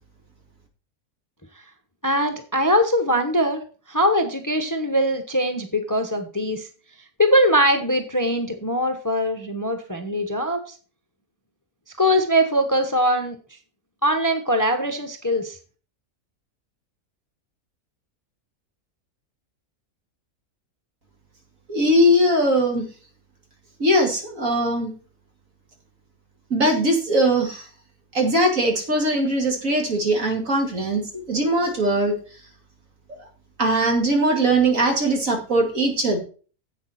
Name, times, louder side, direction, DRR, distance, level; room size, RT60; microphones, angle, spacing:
voice 1, 2.0-6.7 7.2-10.7 12.0-13.4 14.0-15.6, equal, 15° left, 6 dB, 1.0 m, -22 dB
voice 2, 21.7-22.8 23.8-24.9 26.5-27.6 28.1-31.0 31.3-32.1 33.1-33.2 33.6-36.2, right 1 dB, 60° right, 2 dB, 2.7 m, -20 dB
10.5 x 8.1 x 4.2 m, 0.38 s
omnidirectional pair, 1.6 m